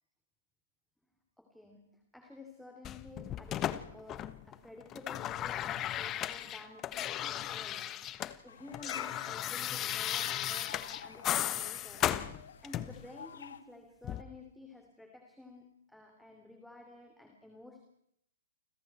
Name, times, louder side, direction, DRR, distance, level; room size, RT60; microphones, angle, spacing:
voice 1, 1.4-12.1 12.6-17.8, left 2 dB, ahead, 3 dB, 3.3 m, -52 dB
sound 1, 2.8-4.5 4.8-8.4 8.6-13.1 14.0-14.2, left 12 dB, 25° left, 1.3 m, -36 dB
sound 2, 8.5-13.6, left 7 dB, 75° left, 2.0 m, -49 dB
29.5 x 26.0 x 4.5 m, 0.75 s
hypercardioid pair, 125°, 0 cm